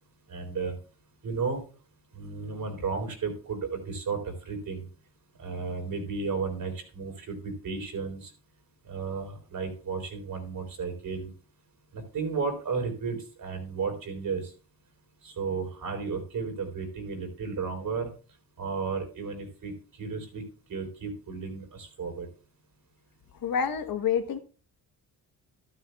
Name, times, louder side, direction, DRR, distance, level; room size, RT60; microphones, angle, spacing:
voice 1, 0.3-0.8 1.2-1.6 2.1-4.8 5.4-8.3 8.8-11.3 11.9-14.5 15.2-18.1 18.6-20.4 20.7-22.3, right 5 dB, 60° right, 4.0 m, -33 dB
voice 2, 23.4-24.4, left 7 dB, 65° left, 1.2 m, -27 dB
14.0 x 12.0 x 2.3 m
cardioid pair, 100°, 38 cm